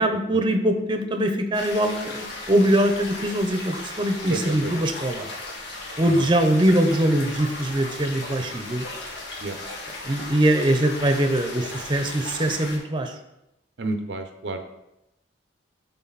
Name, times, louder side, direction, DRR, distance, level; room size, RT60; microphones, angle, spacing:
voice 1, 0.0-5.3 6.0-8.9 10.0-13.1, right 1 dB, 25° right, 6 dB, 0.8 m, -22 dB
sound 1, 1.5-12.8, left 2 dB, 75° left, 1.8 m, -36 dB
voice 2, 4.3-4.7 9.4-9.6 13.8-14.6, right 2 dB, 85° right, 7 dB, 0.7 m, -30 dB
10.0 x 4.0 x 4.1 m, 0.87 s
head